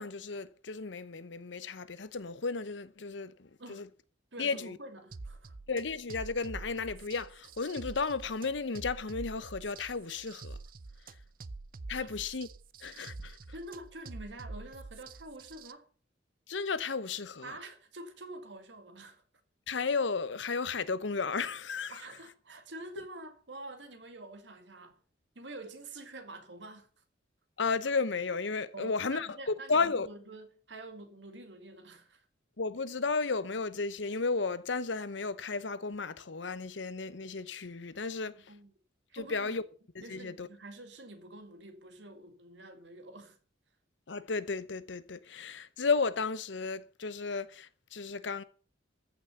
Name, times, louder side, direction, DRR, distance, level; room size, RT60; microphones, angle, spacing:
voice 1, 0.0-3.9 4.4-4.8 5.7-10.6 11.9-12.5 12.8-13.4 16.5-17.5 19.7-22.0 27.6-30.1 32.6-38.5 39.1-39.6 39.9-40.5 44.1-48.4, left 4 dB, 75° left, 0.9 m, -33 dB
voice 2, 4.3-5.6 12.0-12.1 13.5-15.9 17.4-19.2 21.9-25.0 25.4-26.9 28.7-32.2 38.3-38.7 39.1-39.5 40.0-43.4, right 2 dB, 70° right, 2.1 m, -47 dB
sound 1, 5.1-15.7, right 3 dB, 50° right, 0.6 m, -46 dB
14.5 x 6.3 x 6.9 m
head